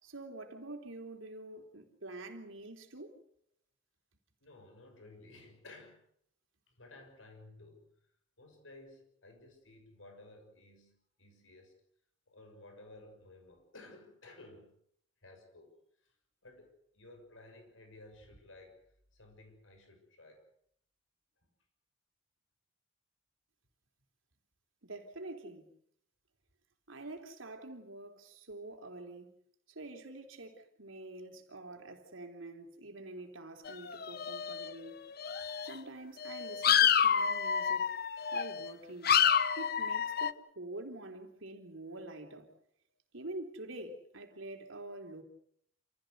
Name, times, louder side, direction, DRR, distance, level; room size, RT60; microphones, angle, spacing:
voice 1, 0.0-3.1 24.8-25.7 26.9-29.3 29.7-35.0 35.6-37.9 38.3-39.1 39.6-42.5 43.1-45.2, right 2 dB, 90° right, 3.6 m, -46 dB
voice 2, 4.4-6.0 6.7-7.8 8.4-11.7 12.3-14.8 15.2-15.7 16.0-16.1 16.4-18.8 19.1-20.4, left 2 dB, 90° left, 6.5 m, -55 dB
sound 1, 33.7-34.9 35.2-35.7 36.2-38.7 39.0-40.3, left 8 dB, 50° left, 0.9 m, -29 dB
28.0 x 16.5 x 8.1 m
head